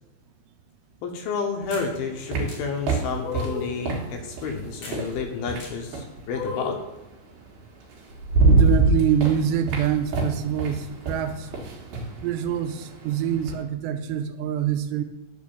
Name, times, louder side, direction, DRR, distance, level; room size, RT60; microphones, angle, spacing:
voice 1, 1.0-6.8, left 5 dB, 70° left, 3 dB, 2.6 m, -30 dB
sound 1, 1.6-6.2 7.5-7.6 8.0-13.6, right 3 dB, 65° right, 3.2 m, -25 dB
sound 2, 1.7-1.9 2.5-2.6 3.2-3.7 4.8-5.0 5.6-5.7 6.3-6.9, left 4 dB, 45° left, 3.7 m, -33 dB
voice 2, 8.4-11.5 12.2-15.0, right 9 dB, 85° right, 8 dB, 2.9 m, -25 dB
11.0 x 4.7 x 6.9 m, 0.96 s
omnidirectional pair, 4.9 m